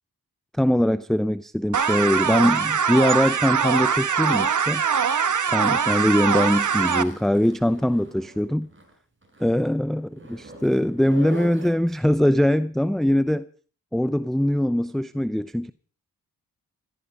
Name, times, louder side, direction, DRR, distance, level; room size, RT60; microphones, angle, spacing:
voice 1, 0.6-4.8 5.4-8.7 9.4-13.5 13.9-15.7, equal, ahead, 0.6 m, -22 dB
sound 1, 1.7-7.0, right 7 dB, 50° right, 1.2 m, -22 dB
Zipper (clothing), 6.4-8.9 9.2-9.5 10.1-11.7, right 2 dB, 30° right, 6.5 m, -42 dB
15.0 x 14.5 x 5.1 m
supercardioid pair, 45°, 38 cm